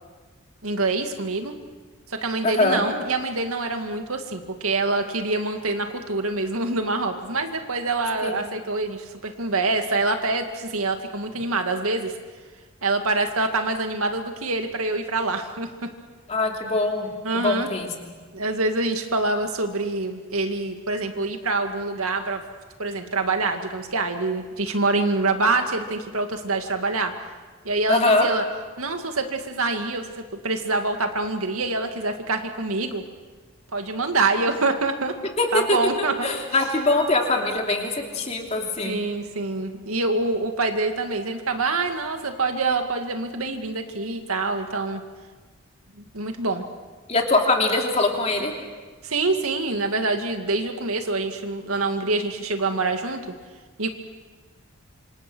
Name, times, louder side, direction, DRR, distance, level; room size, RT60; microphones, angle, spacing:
voice 1, 0.6-1.5 2.1-12.2 12.8-15.7 17.2-17.7 18.3-22.4 22.8-27.1 27.6-28.4 28.8-33.0 33.7-35.2 35.5-36.3 38.8-45.0 46.0-46.6 49.0-53.2 53.8-53.9, right 3 dB, 75° right, 5 dB, 2.2 m, -25 dB
voice 2, 2.4-2.8 8.2-8.4 16.3-17.1 17.3-17.9 27.9-28.3 35.4-35.8 36.2-39.0 47.1-48.5, left 2 dB, 30° left, 1 dB, 2.9 m, -22 dB
27.0 x 26.0 x 6.3 m, 1.4 s
head